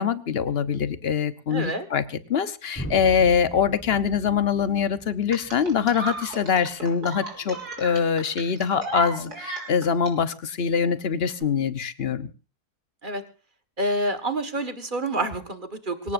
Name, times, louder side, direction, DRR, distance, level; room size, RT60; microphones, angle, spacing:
voice 1, 0.0-2.0 2.3-12.3, left 7 dB, 45° left, 14 dB, 1.1 m, -24 dB
voice 2, 1.5-1.9 13.0-13.2 13.8-16.1, right 1 dB, 30° right, 10 dB, 1.8 m, -28 dB
sound 1, 2.8-6.7, equal, 10° left, 3.9 m, -39 dB
sound 2, 5.3-10.1 11.3-11.4, right 4 dB, 75° right, 4.5 m, -35 dB
25.0 x 17.5 x 2.6 m, 0.34 s
omnidirectional pair, 1.7 m